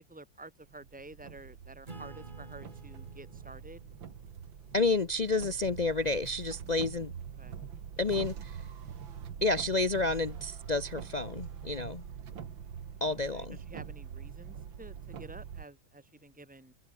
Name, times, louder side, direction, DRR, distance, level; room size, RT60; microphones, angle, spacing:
voice 1, 0.0-3.8 7.4-7.6 13.3-16.7, right 2 dB, 5° right, 2.7 m, -50 dB
sound 1, 0.7-15.7, right 7 dB, 85° right, 2.6 m, -44 dB
Acoustic guitar / Strum, 1.9-6.9, right 2 dB, 25° right, 3.0 m, -53 dB
voice 2, 4.7-7.1 8.0-8.6 9.4-12.1 13.0-13.6, left 3 dB, 75° left, 0.3 m, -30 dB
open air
omnidirectional pair, 2.0 m